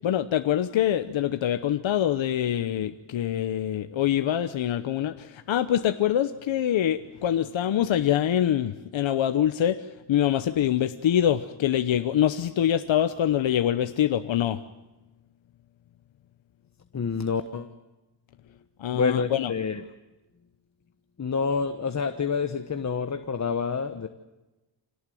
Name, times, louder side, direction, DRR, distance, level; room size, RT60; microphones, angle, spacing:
voice 1, 0.0-14.6 18.8-19.5, left 10 dB, 80° left, 9 dB, 1.0 m, -25 dB
voice 2, 16.9-17.7 18.9-19.8 21.2-24.1, left 5 dB, 35° left, 8 dB, 1.2 m, -28 dB
26.5 x 18.0 x 9.3 m, 1.1 s
wide cardioid pair, 110°, 45 cm